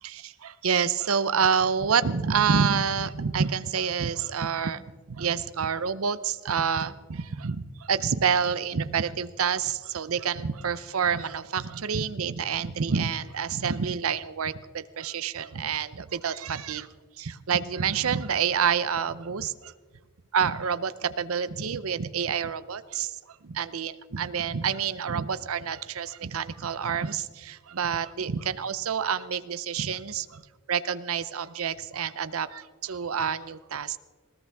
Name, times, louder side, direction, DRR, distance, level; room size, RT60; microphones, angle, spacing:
voice 1, 0.0-4.8 5.1-16.9 17.2-19.7 20.3-30.4 30.7-34.0, right 6 dB, 80° right, 15 dB, 0.7 m, -28 dB
19.5 x 18.0 x 3.5 m, 1.4 s
head